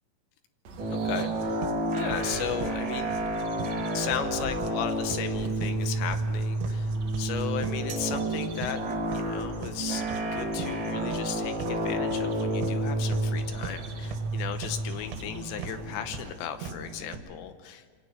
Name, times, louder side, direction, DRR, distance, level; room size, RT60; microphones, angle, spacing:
sound 1, 0.6-16.3, right 3 dB, 65° right, 1.7 m, -44 dB
sound 2, 0.8-17.3, right 1 dB, 25° right, 4.2 m, -31 dB
voice 1, 0.9-1.7 1.9-3.1 3.9-8.8 9.1-10.0 10.3-17.8, left 9 dB, 75° left, 9 dB, 2.9 m, -36 dB
sound 3, 1.2-17.2, right 7 dB, 80° right, 4.3 m, -41 dB
26.5 x 24.5 x 5.6 m, 1.5 s
omnidirectional pair, 5.8 m